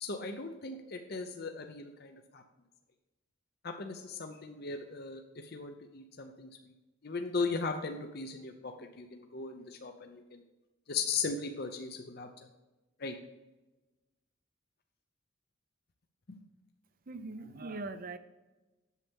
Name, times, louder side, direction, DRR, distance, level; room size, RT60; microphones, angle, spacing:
voice 1, 0.0-2.4 3.6-6.7 7.0-10.4 10.9-12.3 13.0-13.1 16.3-16.4, left 4 dB, 50° left, 5 dB, 0.7 m, -38 dB
voice 2, 17.1-18.2, right 3 dB, 45° right, 11 dB, 0.5 m, -41 dB
8.2 x 7.3 x 3.6 m, 1.1 s
head